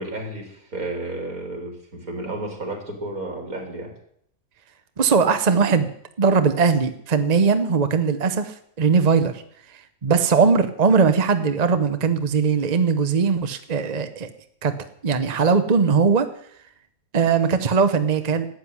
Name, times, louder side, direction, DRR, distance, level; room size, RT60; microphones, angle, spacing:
voice 1, 0.0-3.9, right 2 dB, 75° right, 3 dB, 3.6 m, -32 dB
voice 2, 5.0-5.9 6.2-9.3 10.0-14.3 14.6-14.7 15.0-16.3 17.1-18.5, right 5 dB, 35° right, 9 dB, 0.9 m, -19 dB
12.5 x 7.9 x 9.8 m, 0.68 s
omnidirectional pair, 1.5 m